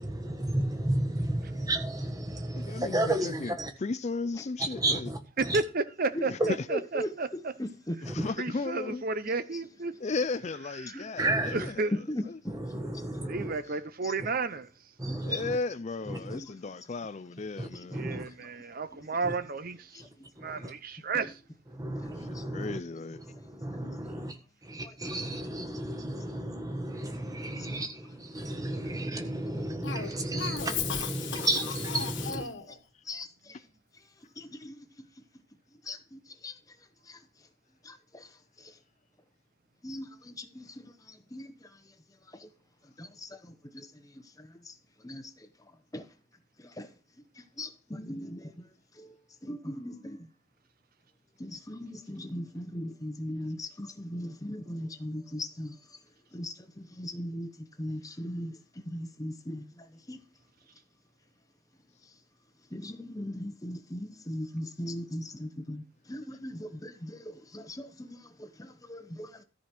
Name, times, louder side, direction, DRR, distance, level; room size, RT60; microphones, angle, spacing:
voice 1, 0.0-3.7 4.6-5.6 8.0-8.3 11.2-11.7 12.5-13.5 15.0-15.6 16.1-16.2 17.6-18.3 19.2-19.3 20.4-20.7 21.7-22.8 23.3-24.4 24.6-32.4, right 1 dB, 15° right, 1.4 m, -32 dB
voice 2, 2.6-5.1 6.3-6.7 8.0-9.0 10.0-11.9 12.2-12.4 15.2-18.0 22.2-22.3 22.5-23.2, left 3 dB, 35° left, 0.4 m, -35 dB
voice 3, 5.4-7.5 8.4-9.9 10.8-11.1 11.5-11.9 13.3-14.7 17.9-20.0 20.4-21.4, right 3 dB, 45° right, 0.7 m, -32 dB
voice 4, 6.4-7.1 7.6-8.0 10.9-11.0 12.1-12.6 15.0-15.2 16.3-16.5 22.3-22.7 33.1-33.5 34.4-34.7 35.9-36.5 37.1-37.2 37.8-38.3 39.8-40.7 41.1-41.5 42.4-42.5 43.0-43.4 43.7-43.9 44.4-44.7 45.0-45.2 45.9-46.0 46.8-46.9 47.6-48.5 49.0-49.1 49.4-50.2 51.4-55.7 56.3-57.5 57.8-58.6 58.9-59.6 60.1-60.2 62.7-65.8 66.1-69.3, equal, 15° left, 0.9 m, -38 dB
Cough, 29.8-32.8, left 7 dB, 65° left, 1.5 m, -35 dB
14.0 x 5.1 x 6.0 m
head